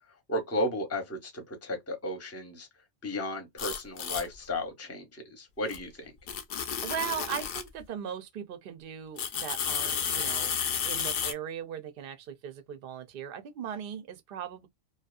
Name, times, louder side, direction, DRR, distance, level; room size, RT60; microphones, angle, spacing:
voice 1, 0.3-2.7 3.0-6.1, left 1 dB, 15° left, 0.6 m, -34 dB
sound 1, 3.6-4.3 5.7-5.8 6.3-7.7 9.2-11.3, left 7 dB, 60° left, 0.6 m, -32 dB
voice 2, 6.8-10.5 10.8-14.7, right 9 dB, 60° right, 0.7 m, -38 dB
2.6 x 2.3 x 2.3 m
omnidirectional pair, 1.3 m